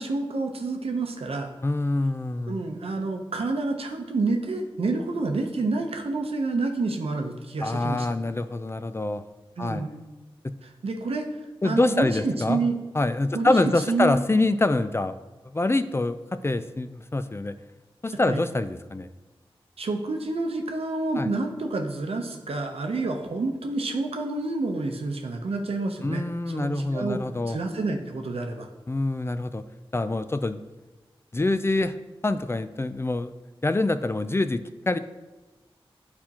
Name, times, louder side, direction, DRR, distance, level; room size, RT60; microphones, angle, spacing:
voice 1, 0.0-1.5 2.5-8.1 9.6-9.9 10.6-11.3 11.6-12.8 13.3-14.2 18.3-18.4 19.8-28.7, right 3 dB, 90° right, 3 dB, 0.7 m, -28 dB
voice 2, 1.6-2.6 7.6-9.2 9.6-9.8 10.4-10.5 11.6-12.7 12.9-15.2 15.5-16.2 16.4-17.5 18.0-19.1 21.2-21.3 26.0-27.6 28.9-29.6 29.9-30.6 31.3-32.0 32.2-33.3 33.6-35.0, left 2 dB, 25° left, 11 dB, 0.3 m, -25 dB
9.5 x 4.3 x 2.9 m, 1.1 s
wide cardioid pair, 50°, 10 cm